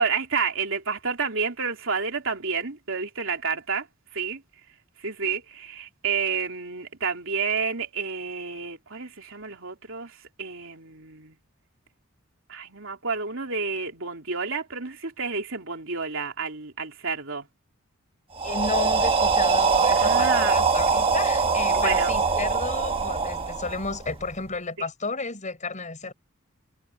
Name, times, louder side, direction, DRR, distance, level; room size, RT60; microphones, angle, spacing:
voice 1, 0.0-4.4 5.0-11.4 12.5-17.5 20.0-20.6 21.7-22.1, right 5 dB, 65° right, 3.5 m, -30 dB
voice 2, 18.4-26.1, left 3 dB, 35° left, 5.7 m, -32 dB
sound 1, 18.4-24.3, right 4 dB, 25° right, 1.4 m, -23 dB
head